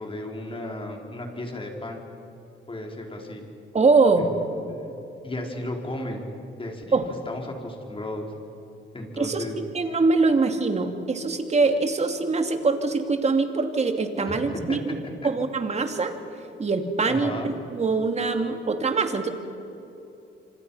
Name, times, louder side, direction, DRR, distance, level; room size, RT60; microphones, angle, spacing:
voice 1, 0.0-2.0 2.7-3.4 4.2-4.3 4.7-4.8 5.2-6.3 6.6-7.0 7.3-8.3 8.9-9.6 14.2-14.4 14.7-14.8 15.2-15.3 17.1-17.5, left 1 dB, 25° left, 1 dB, 4.6 m, -34 dB
voice 2, 3.7-4.3 6.9-7.1 9.2-9.4 9.7-14.9 15.2-16.2 16.6-19.3, right 3 dB, 35° right, 6 dB, 2.6 m, -23 dB
26.5 x 26.0 x 5.8 m, 2.8 s
cardioid pair, 90°, 20 cm